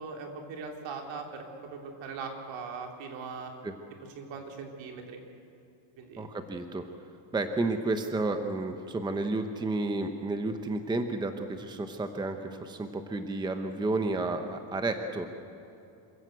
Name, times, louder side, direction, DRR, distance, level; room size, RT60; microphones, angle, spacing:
voice 1, 0.0-1.4 1.7-3.5 4.2-5.2 6.0-6.3, right 5 dB, 70° right, 2 dB, 3.6 m, -40 dB
voice 2, 6.2-6.9 7.3-15.3, right 2 dB, 10° right, 7 dB, 0.8 m, -31 dB
27.0 x 15.5 x 8.1 m, 2.8 s
cardioid pair, 170°, 47 cm